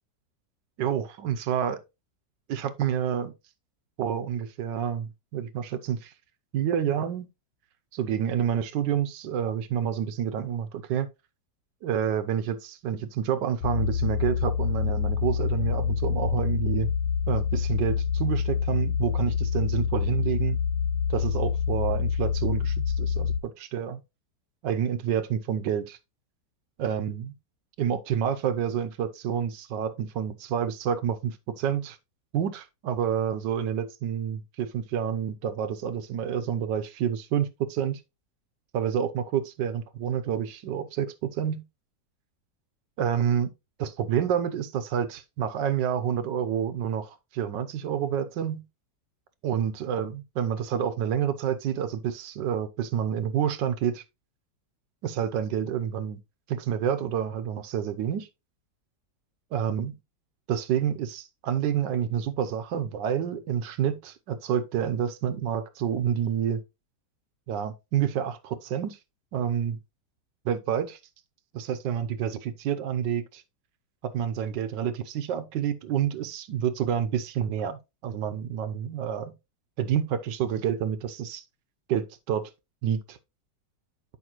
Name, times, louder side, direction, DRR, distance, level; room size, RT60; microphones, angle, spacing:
voice 1, 0.8-1.8 2.5-3.3 4.0-6.1 6.5-7.3 7.9-11.1 11.8-16.9 17.3-20.6 21.1-24.0 24.6-26.0 26.8-27.3 27.8-32.0 32.3-38.0 38.7-41.6 43.0-43.5 43.8-48.6 49.4-54.0 55.0-56.2 56.5-58.3 59.5-59.9 60.5-66.6 67.5-69.0 69.3-69.8 70.4-71.0 71.5-73.4 74.0-79.3 79.8-81.4 81.9-82.5 82.8-83.2, right 9 dB, 85° right, 1.4 m, -28 dB
sound 1, 13.6-23.4, left 7 dB, 75° left, 1.1 m, -26 dB
9.8 x 5.3 x 3.0 m
omnidirectional pair, 1.9 m